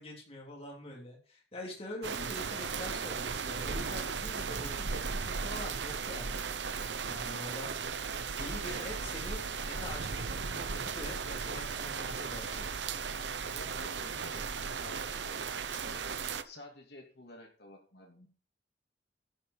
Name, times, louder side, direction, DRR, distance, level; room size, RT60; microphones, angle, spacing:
voice 1, 0.0-6.5 7.1-12.7, left 1 dB, 35° left, -1 dB, 3.1 m, -45 dB
sound 1, 2.0-16.4, right 5 dB, 90° right, 0.9 m, -36 dB
voice 2, 13.5-16.0 16.4-18.3, left 1 dB, 65° left, 1 dB, 3.0 m, -52 dB
10.5 x 5.9 x 7.3 m, 0.40 s
head